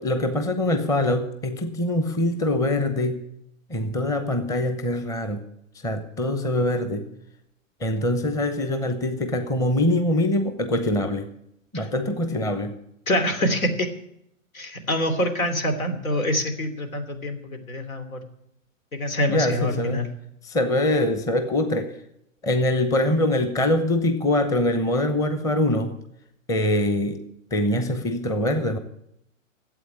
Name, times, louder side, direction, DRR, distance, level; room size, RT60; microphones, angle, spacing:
voice 1, 0.0-3.2 3.7-5.4 5.8-7.1 7.8-11.3 11.7-12.8 19.3-20.0 20.4-21.9 22.4-26.0 26.5-27.2 27.5-28.8, left 1 dB, 10° left, 9 dB, 0.8 m, -23 dB
voice 2, 13.1-13.9 14.5-18.2 18.9-20.1, left 1 dB, 85° left, 7 dB, 3.0 m, -25 dB
12.5 x 8.2 x 9.8 m, 0.76 s
hypercardioid pair, 135°, 40 cm